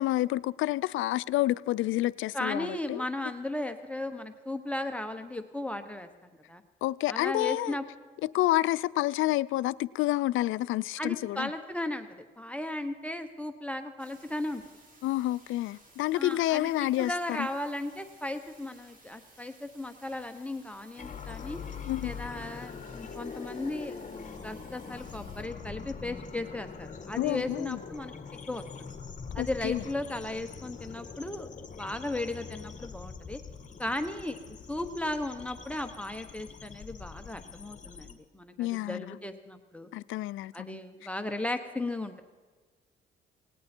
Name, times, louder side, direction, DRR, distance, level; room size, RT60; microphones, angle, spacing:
voice 1, 0.0-3.0 6.8-7.8 8.3-11.5 15.0-17.5 21.9-22.1 27.2-27.8 29.4-29.8 38.6-39.2 39.9-40.8, left 16 dB, 80° left, 0.4 m, -29 dB
voice 2, 2.3-6.1 6.5-6.6 7.1-7.8 11.0-14.6 16.1-16.7 17.0-21.6 22.0-28.1 28.5-28.9 29.3-31.5 31.7-33.4 33.8-34.4 34.7-39.9 40.5-42.2, left 1 dB, 5° left, 1.0 m, -36 dB
sound 1, 14.0-25.4, right 2 dB, 45° right, 4.0 m, -58 dB
sound 2, 21.0-38.1, left 5 dB, 40° left, 1.5 m, -43 dB
18.5 x 18.0 x 4.4 m
cardioid pair, 90°, 20 cm